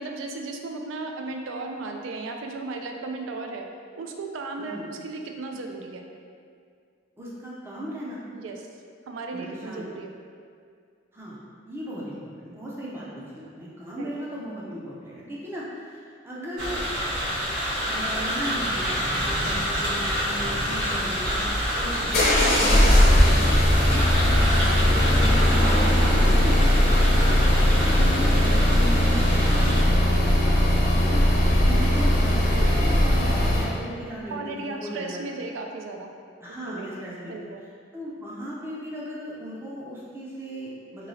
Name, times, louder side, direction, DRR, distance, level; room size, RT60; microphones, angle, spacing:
voice 1, 0.0-3.6 4.0-6.0 8.3-8.6 9.1-10.1 14.0-14.1 24.3-24.4 28.3-28.5 34.3-36.1 36.7-36.9 37.3-37.6, right 3 dB, 85° right, 3 dB, 0.3 m, -35 dB
voice 2, 7.2-8.2 9.3-9.8 11.1-11.4 11.6-16.8 17.9-21.4 21.8-25.0 25.5-26.8 27.2-27.4 27.7-31.2 31.6-35.2 36.4-37.3 37.9-41.1, equal, 15° right, -7 dB, 0.5 m, -36 dB
sound 1, 16.6-29.8, equal, 65° right, 0.9 m, -28 dB
sound 2, 21.2-33.7, left 1 dB, 55° left, 0.6 m, -19 dB
3.0 x 2.7 x 2.7 m, 2.2 s
head